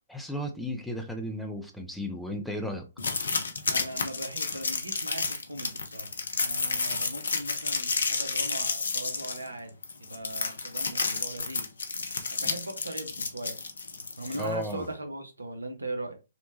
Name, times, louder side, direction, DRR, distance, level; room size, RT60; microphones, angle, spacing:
voice 1, 0.1-2.9 12.4-12.5 14.3-14.9, left 1 dB, ahead, 0.4 m, -34 dB
sound 1, 3.0-14.7, left 4 dB, 60° left, 0.5 m, -31 dB
voice 2, 3.7-9.7 10.0-11.7 12.0-13.6 14.2-16.2, right 2 dB, 75° right, 0.6 m, -39 dB
2.8 x 2.1 x 2.6 m
figure-of-eight pair, 125°, 0 cm